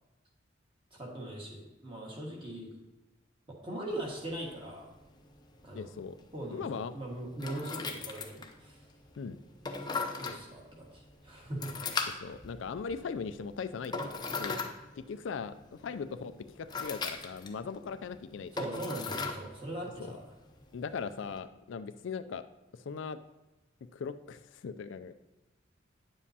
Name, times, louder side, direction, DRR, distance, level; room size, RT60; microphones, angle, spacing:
voice 1, 0.9-2.7 3.5-4.9 5.6-5.9 6.3-8.8 10.1-11.9 18.5-20.2, right 1 dB, 25° right, -2 dB, 1.6 m, -40 dB
sound 1, 3.9-21.4, left 4 dB, 20° left, 0.6 m, -41 dB
voice 2, 5.7-6.2 6.5-6.9 9.2-9.4 12.2-13.9 14.3-14.6 15.0-18.5 20.0-20.1 20.7-22.4 22.7-23.2 23.9-25.1, left 5 dB, 70° left, 11 dB, 0.4 m, -39 dB
9.5 x 7.2 x 2.8 m, 1.0 s
head